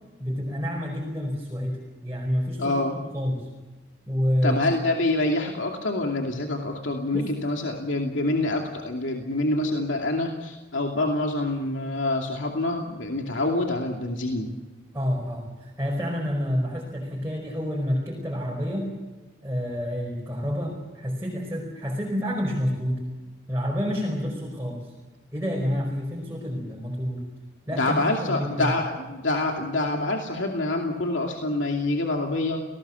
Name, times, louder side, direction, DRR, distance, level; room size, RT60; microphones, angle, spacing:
voice 1, 0.2-3.5 4.1-4.6 7.1-7.3 14.9-18.9 19.4-23.0 23.5-24.9 25.3-27.2 27.7-28.7, equal, 15° right, -2 dB, 5.0 m, -28 dB
voice 2, 2.6-3.0 4.4-14.5 27.7-32.6, left 2 dB, 80° left, 2 dB, 2.7 m, -26 dB
29.5 x 19.0 x 7.1 m, 1.2 s
head